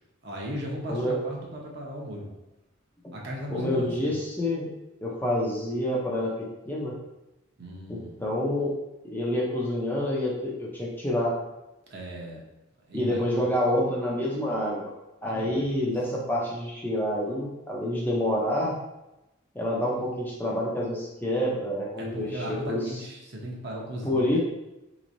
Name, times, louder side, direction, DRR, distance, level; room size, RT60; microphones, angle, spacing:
voice 1, 0.2-2.3 3.1-4.2 7.6-8.2 11.9-12.4 12.9-13.5 15.3-15.9 22.0-24.4, equal, 60° right, -2 dB, 0.8 m, -37 dB
voice 2, 3.5-4.7 5.0-6.9 7.9-8.7 9.0-11.4 12.9-14.9 15.2-18.8 19.5-22.8 24.0-24.4, left 1 dB, 10° left, -4 dB, 0.6 m, -28 dB
4.1 x 3.0 x 2.6 m, 0.96 s
head